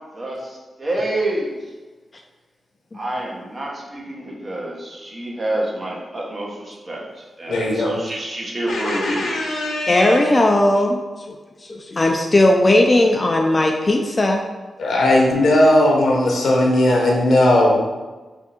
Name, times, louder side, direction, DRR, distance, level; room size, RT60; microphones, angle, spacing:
voice 1, 0.1-1.7 2.9-9.4, right 1 dB, 40° right, -3 dB, 1.0 m, -28 dB
voice 2, 7.5-7.9 8.7-10.2 14.8-17.8, left 1 dB, 75° left, -1 dB, 0.8 m, -17 dB
voice 3, 9.9-11.0 11.3-14.4, left 1 dB, 35° left, 2 dB, 0.4 m, -17 dB
3.5 x 2.6 x 4.2 m, 1.2 s
cardioid pair, 55°, 0 cm